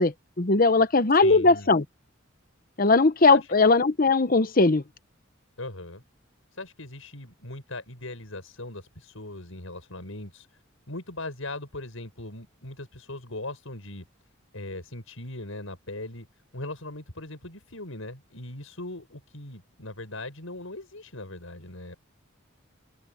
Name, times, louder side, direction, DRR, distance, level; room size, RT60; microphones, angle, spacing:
voice 1, 0.0-1.8 2.8-4.8, left 3 dB, 45° left, 0.9 m, -19 dB
voice 2, 1.1-1.7 3.3-3.5 5.6-6.0 6.5-10.6 10.9-14.0 14.5-16.3 16.5-22.0, left 2 dB, 90° left, 6.8 m, -39 dB
head